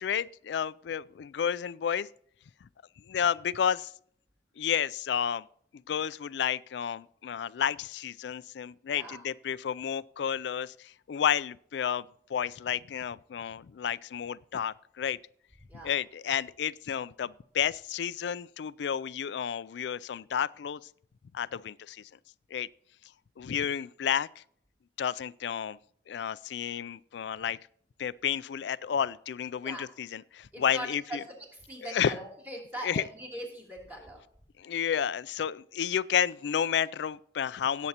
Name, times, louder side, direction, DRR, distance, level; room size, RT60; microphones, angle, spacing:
voice 1, 0.0-2.1 3.1-3.9 4.6-5.4 5.9-12.0 12.3-15.2 15.8-20.8 21.3-22.0 22.5-22.7 23.4-24.4 25.0-25.8 26.1-27.6 28.0-31.2 31.8-32.2 32.8-33.0 34.6-37.9, left 8 dB, 75° left, 0.3 m, -31 dB
voice 2, 30.5-31.2 31.7-34.2, right 1 dB, 10° right, 2.9 m, -41 dB
17.5 x 8.3 x 2.9 m
head